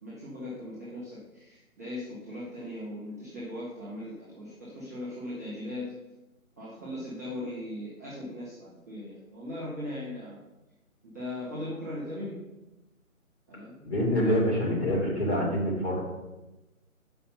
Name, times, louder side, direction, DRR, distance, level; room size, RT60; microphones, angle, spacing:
voice 1, 0.0-6.0 6.6-10.4 11.1-12.4 13.5-13.8, left 1 dB, 10° right, -13 dB, 1.0 m, -39 dB
voice 2, 13.8-16.0, left 1 dB, 50° left, -4 dB, 3.3 m, -26 dB
7.2 x 5.6 x 5.8 m, 1.0 s
hypercardioid pair, 175°, 42 cm